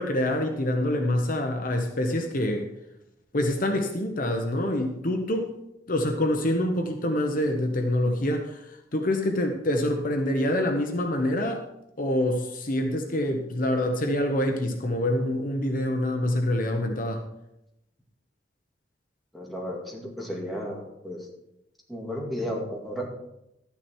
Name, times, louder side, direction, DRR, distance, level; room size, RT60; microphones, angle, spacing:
voice 1, 0.0-2.7 3.3-5.5 5.9-8.6 8.9-11.6 12.0-17.2, left 1 dB, 50° left, 4 dB, 1.1 m, -26 dB
voice 2, 19.3-21.3 21.9-23.1, equal, ahead, -2 dB, 2.2 m, -33 dB
12.5 x 9.7 x 4.5 m, 0.85 s
head